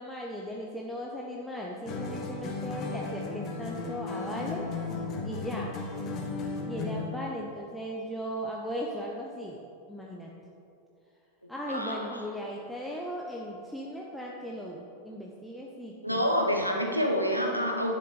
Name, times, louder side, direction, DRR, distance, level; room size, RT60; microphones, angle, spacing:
voice 1, 0.0-4.7 5.2-5.7 6.7-9.6 9.9-10.3 11.5-16.2 16.9-17.0, equal, 5° left, -3 dB, 0.9 m, -37 dB
sound 1, 1.9-7.2, left 3 dB, 35° left, 1.4 m, -35 dB
voice 2, 11.7-12.2 16.0-17.9, equal, 90° right, 2 dB, 1.3 m, -27 dB
11.0 x 6.8 x 5.3 m, 2.6 s
figure-of-eight pair, 90°, 0 cm